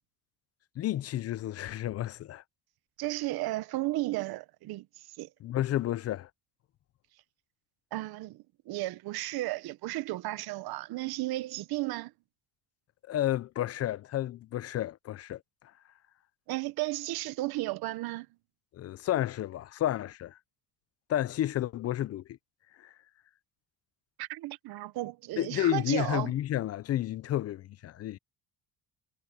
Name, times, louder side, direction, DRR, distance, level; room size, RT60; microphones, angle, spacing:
voice 1, 0.8-2.4 5.4-6.3 13.1-15.4 18.7-20.4 21.1-22.2 22.8-22.9 25.4-28.2, left 13 dB, 45° left, 0.4 m, -31 dB
voice 2, 3.0-5.3 7.9-12.1 16.5-18.3 24.2-26.3, right 18 dB, 80° right, 1.0 m, -34 dB
cardioid pair, 145°, 37 cm